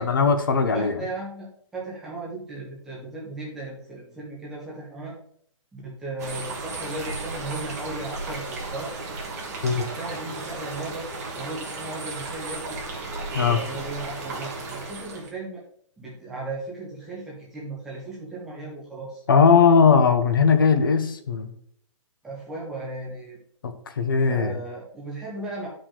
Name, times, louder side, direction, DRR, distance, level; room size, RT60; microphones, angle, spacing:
voice 1, 0.0-0.9 9.6-9.8 13.3-13.6 19.3-21.5 23.6-24.5, left 5 dB, 40° left, 8 dB, 0.8 m, -19 dB
voice 2, 0.7-5.2 5.7-9.0 9.7-11.1 11.3-12.8 13.4-15.6 16.0-19.3 22.2-23.4 24.2-25.7, right 2 dB, 5° right, -6 dB, 0.6 m, -36 dB
sound 1, 6.2-15.3, right 3 dB, 30° right, 1.5 m, -34 dB
10.5 x 5.0 x 3.7 m, 0.64 s
hypercardioid pair, 180°, 17 cm